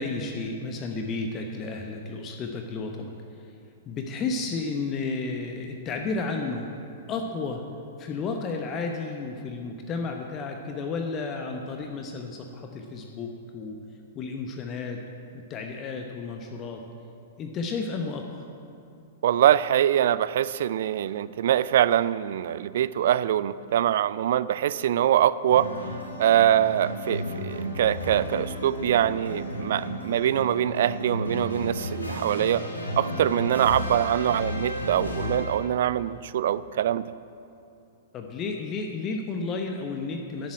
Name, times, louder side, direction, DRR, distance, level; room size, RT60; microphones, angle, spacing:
voice 1, 0.0-3.1 3.8-6.7 7.1-7.6 8.0-13.8 14.1-15.0 15.3-16.8 17.4-18.5 38.1-40.5, left 3 dB, 30° left, 3 dB, 0.9 m, -32 dB
voice 2, 19.2-25.7 26.2-32.7 33.0-37.1, right 11 dB, 55° right, 17 dB, 0.3 m, -23 dB
sound 1, 25.5-35.9, equal, 80° left, 1.8 m, -33 dB
10.5 x 7.4 x 8.6 m, 2.7 s
figure-of-eight pair, 105°, 0 cm